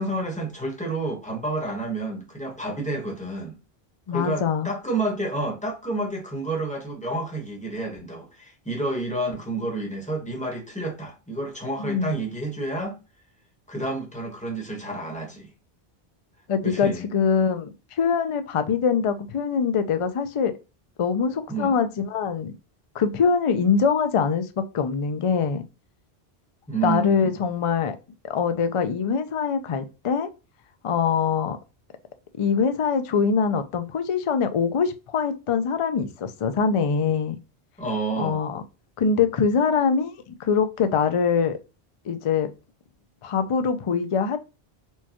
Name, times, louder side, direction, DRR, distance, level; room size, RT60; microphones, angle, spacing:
voice 1, 0.0-3.6 4.1-13.0 13.7-15.5 16.6-17.1 21.5-21.8 26.7-27.4 37.8-38.4, right 2 dB, 5° left, 1.0 m, -29 dB
voice 2, 4.1-4.7 11.8-12.1 16.5-20.5 21.0-22.5 22.9-25.6 26.8-28.0 28.3-30.3 30.8-31.6 32.4-37.4 38.2-38.6 39.0-41.6 42.1-42.5 43.2-44.4, left 6 dB, 50° left, 0.4 m, -23 dB
4.5 x 2.2 x 2.9 m
omnidirectional pair, 1.1 m